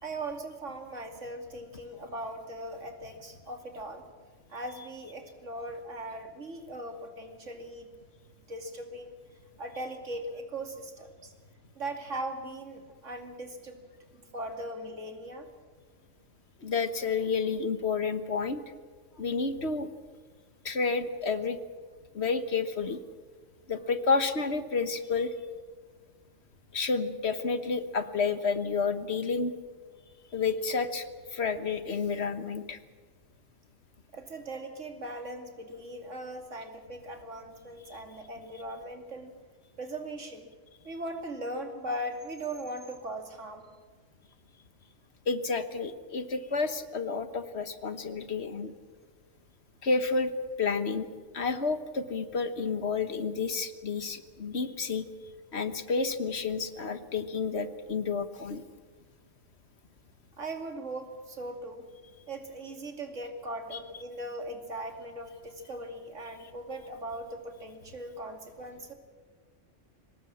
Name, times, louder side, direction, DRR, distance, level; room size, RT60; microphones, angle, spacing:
voice 1, 0.0-4.0 4.5-7.9 8.5-9.1 9.6-11.3 11.7-13.8 14.1-15.5 34.1-39.3 39.8-40.5 40.8-43.7 60.4-61.9 62.3-68.9, right 1 dB, 75° right, 5 dB, 2.9 m, -39 dB
voice 2, 16.6-18.6 19.2-19.9 20.6-21.6 22.1-23.0 23.7-25.3 26.7-29.5 30.3-32.8 37.9-38.0 45.3-48.7 49.8-50.3 50.6-51.1 51.3-55.1 55.5-58.6 63.7-63.8, left 4 dB, 60° left, 10 dB, 1.6 m, -30 dB
23.5 x 19.5 x 7.4 m, 1.5 s
omnidirectional pair, 1.3 m